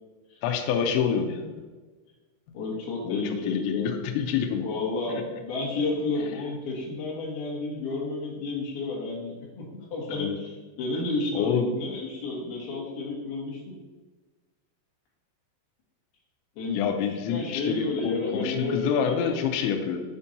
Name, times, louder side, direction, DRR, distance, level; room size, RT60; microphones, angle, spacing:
voice 1, 0.4-1.7 3.0-4.7 5.1-5.2 10.1-10.4 11.3-11.7 16.7-20.0, left 7 dB, 90° left, 3 dB, 2.6 m, -27 dB
voice 2, 2.5-4.0 4.6-13.7 16.6-16.8 17.3-19.4, left 3 dB, 65° left, -5 dB, 2.7 m, -31 dB
8.7 x 4.4 x 2.8 m, 1.3 s
omnidirectional pair, 5.8 m